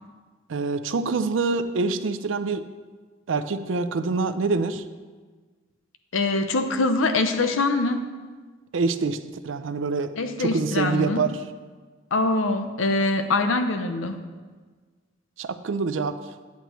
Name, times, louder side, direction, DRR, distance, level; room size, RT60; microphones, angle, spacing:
voice 1, 0.5-2.6 3.3-4.9 8.7-10.1 10.4-11.4 15.4-16.2, right 4 dB, 80° right, 11 dB, 0.5 m, -25 dB
voice 2, 6.1-8.0 10.2-11.2 12.1-14.2, left 2 dB, 90° left, 7 dB, 0.7 m, -23 dB
10.5 x 8.3 x 3.1 m, 1.4 s
head